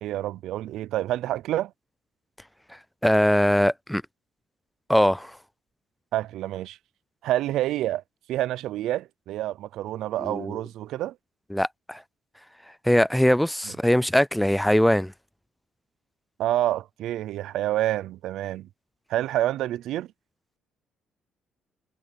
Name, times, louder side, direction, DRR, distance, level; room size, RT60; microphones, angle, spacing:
voice 1, 0.0-1.7 6.1-6.8 7.2-8.0 8.3-11.1 16.4-18.7 19.1-20.1, right 14 dB, 75° right, 0.5 m, -28 dB
voice 2, 3.0-4.0 4.9-5.3 10.2-10.6 11.5-12.0 12.9-15.1, equal, 5° left, 0.4 m, -21 dB
cardioid pair, 110°, 0 cm